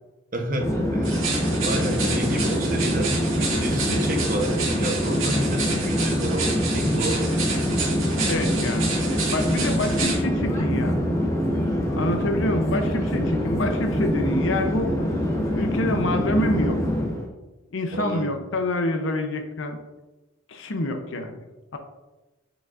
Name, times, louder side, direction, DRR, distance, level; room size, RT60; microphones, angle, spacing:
voice 1, 0.3-1.2 1.6-7.3 17.9-18.4, right 1 dB, 40° right, 4 dB, 0.8 m, -30 dB
Conversation / Chatter / Fixed-wing aircraft airplane, 0.6-17.3, equal, 15° left, 0.7 m, -24 dB
sound 1, 1.0-10.2, right 4 dB, 75° right, 2.1 m, -30 dB
voice 2, 8.3-11.0 12.0-15.1 15.5-16.8 17.7-19.8 20.5-21.4 21.7-21.8, left 1 dB, 65° left, 5 dB, 0.6 m, -27 dB
7.8 x 5.0 x 2.5 m, 1.1 s
head